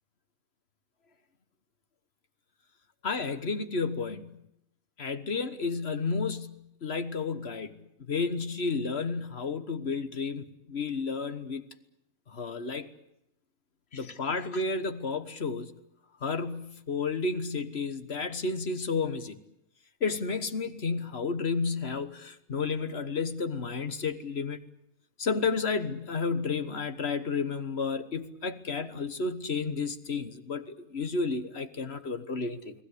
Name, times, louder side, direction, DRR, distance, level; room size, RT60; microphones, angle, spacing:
voice 1, 3.0-4.4 5.0-11.6 12.3-12.9 13.9-15.7 16.2-19.4 20.0-24.6 25.2-32.7, left 4 dB, 50° left, 11 dB, 1.6 m, -32 dB
30.0 x 19.0 x 8.4 m, 0.80 s
omnidirectional pair, 1.5 m